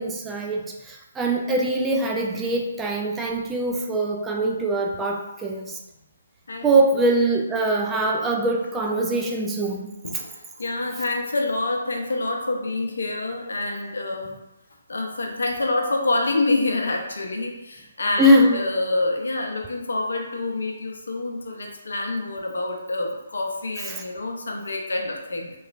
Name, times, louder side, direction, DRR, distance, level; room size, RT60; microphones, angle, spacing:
voice 1, 0.0-5.8 6.6-9.9 18.2-18.6 23.9-24.0, right 1 dB, 10° right, 0 dB, 0.3 m, -22 dB
voice 2, 10.0-14.3 14.9-25.5, left 2 dB, 65° left, 1 dB, 0.6 m, -27 dB
3.1 x 2.9 x 2.4 m, 0.97 s
figure-of-eight pair, 140°, 0 cm